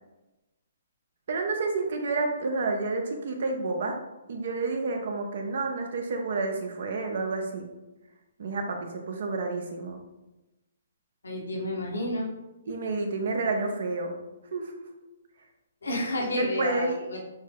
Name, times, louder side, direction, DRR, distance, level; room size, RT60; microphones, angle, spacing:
voice 1, 1.3-4.0 4.3-7.7 8.4-10.0 12.7-14.1 14.5-14.8 16.2-16.9, right 3 dB, 65° right, 3 dB, 0.8 m, -30 dB
voice 2, 11.2-12.3 15.8-17.2, left 1 dB, 90° left, -1 dB, 1.3 m, -30 dB
6.3 x 2.1 x 3.6 m, 1.0 s
hypercardioid pair, 145°, 0 cm